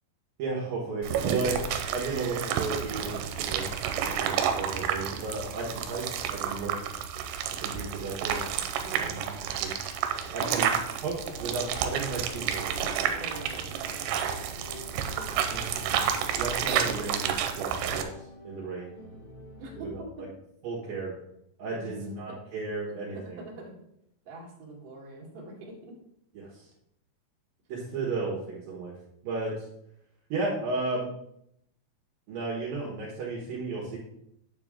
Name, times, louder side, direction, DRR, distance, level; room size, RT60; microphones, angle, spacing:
voice 1, 0.4-6.0 6.3-6.8 7.6-8.4 9.1-9.8 10.3-10.7 11.0-12.7 15.5-18.0 18.4-18.9 19.9-20.0 20.6-21.1 21.6-23.4 26.3-26.6 27.7-28.9 29.2-29.5 30.3-31.1 32.3-34.0, right 3 dB, 65° right, -4 dB, 2.9 m, -34 dB
sound 1, 1.0-18.0, right 8 dB, 90° right, 2.9 m, -30 dB
voice 2, 8.8-9.1 10.6-10.7 13.0-15.0 19.6-19.9 20.2-20.3 21.7-22.5 22.9-23.8 24.2-25.5 25.8-25.9, right 2 dB, 45° right, -2 dB, 2.8 m, -45 dB
sound 2, 12.3-19.9, left 1 dB, 85° left, 5.4 m, -47 dB
9.4 x 7.0 x 3.7 m, 0.76 s
omnidirectional pair, 5.0 m